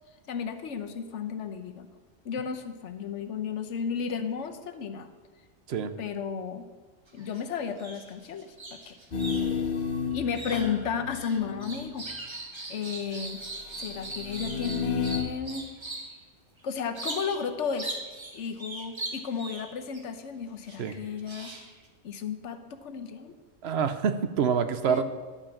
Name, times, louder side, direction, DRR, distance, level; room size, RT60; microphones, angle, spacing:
voice 1, 0.3-1.9 2.2-5.1 6.0-6.7 7.1-9.0 10.1-12.1 12.7-13.4 13.8-15.7 16.6-18.0 18.3-21.5 22.0-23.4 24.9-25.0, left 6 dB, 85° left, 8 dB, 1.1 m, -33 dB
sound 1, 7.1-7.4 7.7-16.2 16.9-17.5 17.8-20.0 20.7-21.9, right 2 dB, 25° right, 1.1 m, -40 dB
sound 2, 9.1-12.1 13.5-15.2, left 6 dB, 50° left, 1.2 m, -32 dB
voice 2, 23.6-25.0, right 7 dB, 65° right, 11 dB, 0.9 m, -26 dB
11.5 x 5.5 x 7.1 m, 1.4 s
omnidirectional pair, 1.2 m